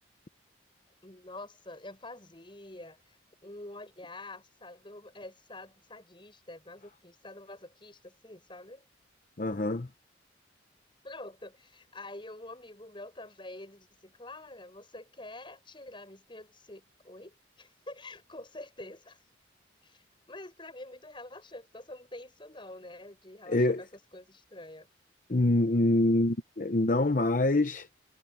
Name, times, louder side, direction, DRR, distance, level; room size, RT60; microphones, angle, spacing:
voice 1, 1.0-8.8 11.0-19.2 19.8-20.0 20.3-23.9 24.1-24.9, left 2 dB, 25° left, 6.5 m, -47 dB
voice 2, 9.4-9.9 23.5-23.8 25.3-27.9, left 2 dB, 45° left, 0.8 m, -25 dB
head